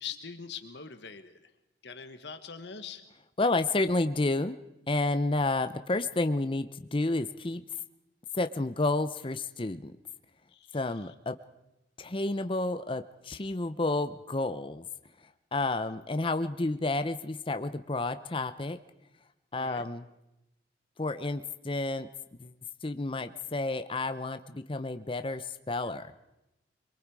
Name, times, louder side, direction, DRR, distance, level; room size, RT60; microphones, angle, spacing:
voice 1, 0.0-1.5 1.8-3.0 10.5-11.1 19.5-19.9, left 6 dB, 65° left, 8 dB, 1.4 m, -43 dB
voice 2, 3.4-4.6 4.9-7.6 8.3-9.9 10.7-11.3 12.0-14.9 15.5-18.8 19.5-20.1 21.0-22.1 22.4-22.5 22.8-26.1, left 2 dB, 30° left, 10 dB, 0.7 m, -30 dB
25.5 x 22.5 x 4.8 m, 0.91 s
head